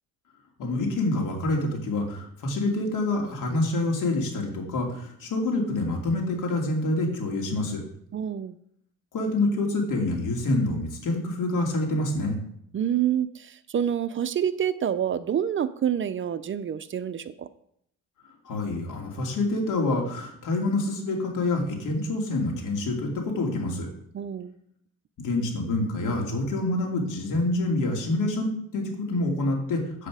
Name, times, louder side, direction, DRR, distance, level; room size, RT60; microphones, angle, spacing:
voice 1, 0.6-7.8 9.1-12.4 18.4-23.9 25.2-30.1, left 2 dB, 75° left, 0 dB, 2.6 m, -27 dB
voice 2, 8.1-8.6 12.7-17.5 24.1-24.5, right 9 dB, 40° right, 14 dB, 0.5 m, -27 dB
8.1 x 7.7 x 4.9 m, 0.70 s
cardioid pair, 115°, 31 cm